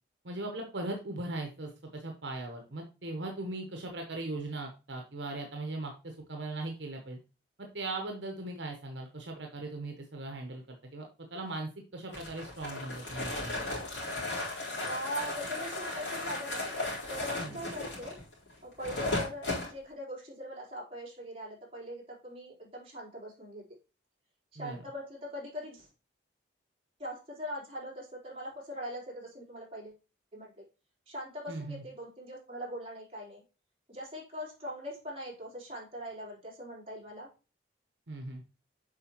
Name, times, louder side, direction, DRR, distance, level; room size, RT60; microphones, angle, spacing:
voice 1, 0.2-7.2 7.6-11.0 11.3-13.7 17.4-17.6 24.6-24.8 31.5-31.8 38.1-38.4, right 2 dB, 70° right, 3 dB, 1.1 m, -39 dB
sound 1, 12.1-19.7, left 2 dB, 75° left, 3.9 m, -36 dB
voice 2, 14.8-16.7 17.1-18.2 18.6-23.6 24.5-25.9 27.0-30.0 30.3-30.6 31.1-33.4 33.9-37.3, equal, 30° right, -4 dB, 3.7 m, -41 dB
7.6 x 5.2 x 3.0 m, 0.32 s
head